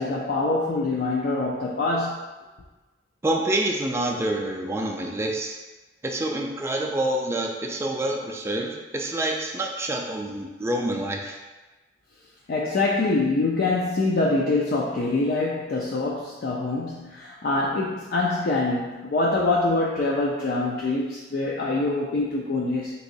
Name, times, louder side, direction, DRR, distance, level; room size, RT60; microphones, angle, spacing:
voice 1, 0.0-2.2 12.5-22.9, left 2 dB, 60° left, -3 dB, 0.4 m, -25 dB
voice 2, 3.2-5.6 6.0-11.4, right 1 dB, 15° right, 1 dB, 0.3 m, -27 dB
3.7 x 3.0 x 2.6 m, 1.2 s
head